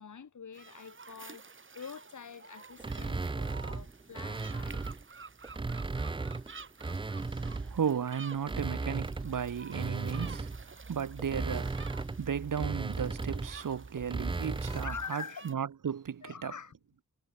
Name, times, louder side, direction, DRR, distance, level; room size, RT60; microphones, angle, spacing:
voice 1, 0.0-4.9 14.6-15.5 16.2-16.7, left 6 dB, 60° left, 4.6 m, -45 dB
sound 1, 0.5-15.5, right 4 dB, 35° right, 2.6 m, -51 dB
sound 2, 2.8-5.0 5.4-7.8 8.3-15.1, right 3 dB, 15° right, 0.5 m, -36 dB
voice 2, 7.5-16.5, right 7 dB, 70° right, 2.2 m, -35 dB
wide cardioid pair, 155°, 33 cm